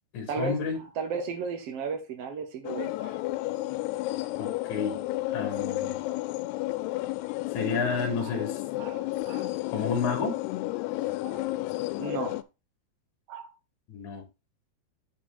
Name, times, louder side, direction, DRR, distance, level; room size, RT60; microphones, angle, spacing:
voice 1, 0.1-0.8 4.4-5.0 5.3-6.0 7.5-8.6 9.7-10.4 13.9-14.2, left 5 dB, 55° left, 2.8 m, -30 dB
voice 2, 1.0-3.2 8.2-8.3 8.8-9.5 11.2-11.4 12.0-12.4 13.3-13.5, right 5 dB, 85° right, 1.3 m, -34 dB
sound 1, 2.6-12.4, left 18 dB, 90° left, 2.6 m, -32 dB
9.7 x 4.9 x 3.6 m
omnidirectional pair, 4.6 m